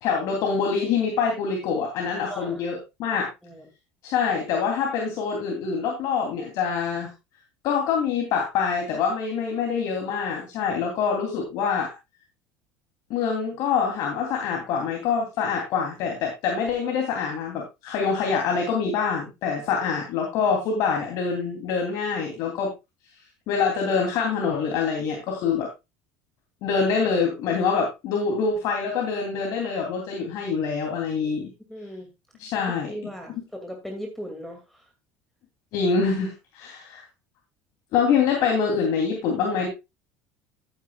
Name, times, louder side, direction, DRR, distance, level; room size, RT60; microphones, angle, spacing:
voice 1, 0.0-3.3 4.0-7.1 7.6-11.9 13.1-22.7 23.5-25.7 26.6-31.5 32.4-32.9 35.7-37.0 37.9-39.7, left 5 dB, 60° left, 1 dB, 3.1 m, -25 dB
voice 2, 2.3-2.8 3.1-3.7 19.8-19.9 31.7-32.1 32.6-34.9, equal, 5° left, 3 dB, 2.4 m, -39 dB
13.0 x 9.3 x 2.4 m, 0.24 s
supercardioid pair, 100°, 7 cm